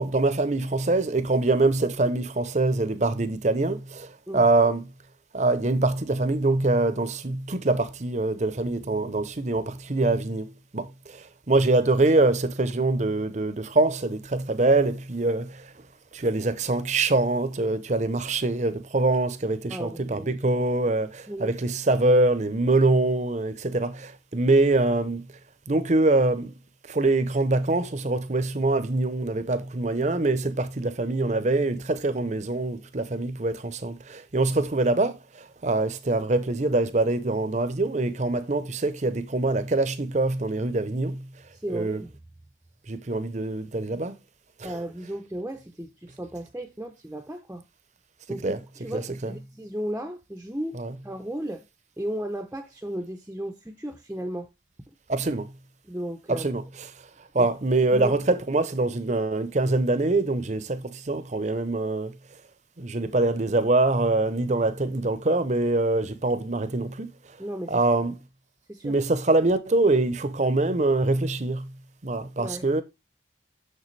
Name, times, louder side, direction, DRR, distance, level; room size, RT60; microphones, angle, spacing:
voice 1, 0.0-4.8 5.3-15.6 16.1-25.2 25.7-26.5 26.9-35.2 35.6-41.2 41.7-42.0 42.9-44.1 44.6-44.7 48.4-48.6 48.9-49.3 50.8-50.9 55.1-55.5 56.3-56.6 57.3-62.1 62.8-67.1 67.7-68.1 68.8-71.7 72.0-72.8, right 2 dB, 40° right, 0.8 m, -24 dB
voice 2, 19.7-20.4 21.3-21.5 41.5-42.2 44.6-47.6 48.3-50.8 51.0-51.6 52.0-54.5 55.8-56.5 57.4-57.5 57.9-58.2 67.4-67.8 68.7-69.0 72.4-72.7, right 1 dB, 10° right, 0.7 m, -35 dB
6.7 x 6.7 x 3.2 m
head